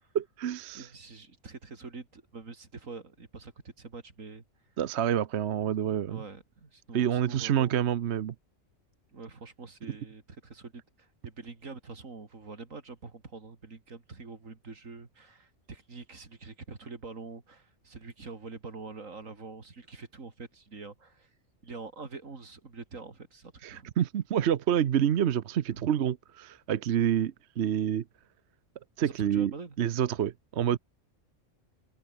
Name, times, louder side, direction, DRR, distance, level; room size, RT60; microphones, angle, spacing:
voice 1, 0.1-0.9 4.8-6.2 6.9-8.3 23.6-28.0 29.0-29.5 29.8-30.8, right 9 dB, 60° right, 1.0 m, -28 dB
voice 2, 0.7-4.4 6.0-7.8 9.1-21.3 21.6-23.9 25.7-25.9 29.0-29.8, right 4 dB, 85° right, 3.2 m, -45 dB
open air
omnidirectional pair, 1.3 m